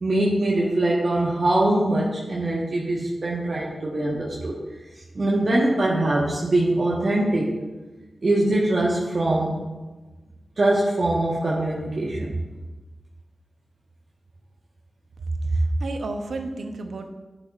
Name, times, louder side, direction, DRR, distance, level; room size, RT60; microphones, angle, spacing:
voice 1, 0.0-4.6 5.1-7.6 8.2-9.6 10.6-12.3, right 1 dB, 60° right, -5 dB, 1.4 m, -22 dB
voice 2, 15.3-17.1, right 2 dB, 75° right, 5 dB, 0.8 m, -27 dB
10.5 x 7.7 x 2.5 m, 1.2 s
cardioid pair, 40°, 0 cm